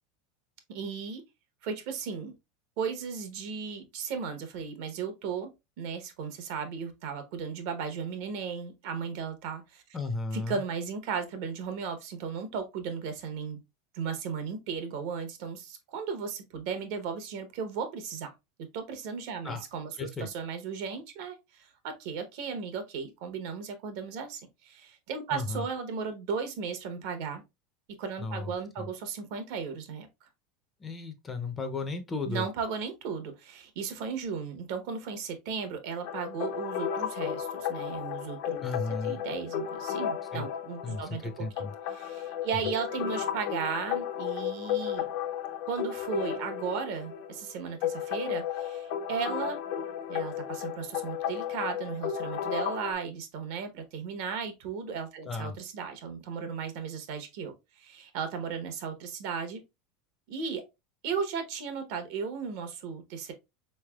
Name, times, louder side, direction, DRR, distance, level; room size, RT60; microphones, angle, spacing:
voice 1, 0.7-1.2 1.6-2.3 2.8-5.5 5.8-9.8 10.3-13.6 13.9-18.3 18.7-27.4 28.0-30.3 32.2-38.6 39.0-45.1 45.7-49.6 50.1-59.6 60.3-60.6 61.0-63.3, right 6 dB, 65° right, 0.9 m, -36 dB
voice 2, 9.9-10.6 19.4-19.6 20.0-20.3 25.3-25.7 28.2-28.5 28.8-28.9 30.8-32.4 38.6-39.2 40.3-40.5 40.8-41.7 55.3-55.6, left 3 dB, 15° left, 0.5 m, -34 dB
sound 1, 36.0-52.9, left 9 dB, 60° left, 0.5 m, -34 dB
4.0 x 3.2 x 2.3 m
supercardioid pair, 145°, 0 cm